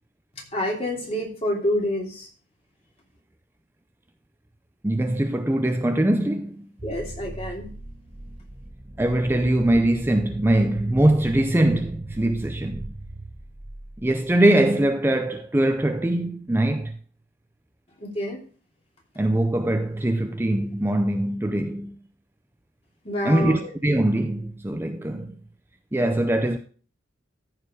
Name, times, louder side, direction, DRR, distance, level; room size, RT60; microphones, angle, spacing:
voice 1, 0.5-2.3 6.8-7.7 18.0-18.4 23.0-23.7, left 1 dB, 30° left, 2.8 m, -27 dB
voice 2, 4.8-6.7 9.0-12.8 14.0-16.9 19.2-21.9 23.2-25.3 25.9-26.6, right 1 dB, 10° right, 0.5 m, -22 dB
sound 1, 6.8-14.3, right 1 dB, 30° right, 0.9 m, -39 dB
14.0 x 4.9 x 4.8 m
head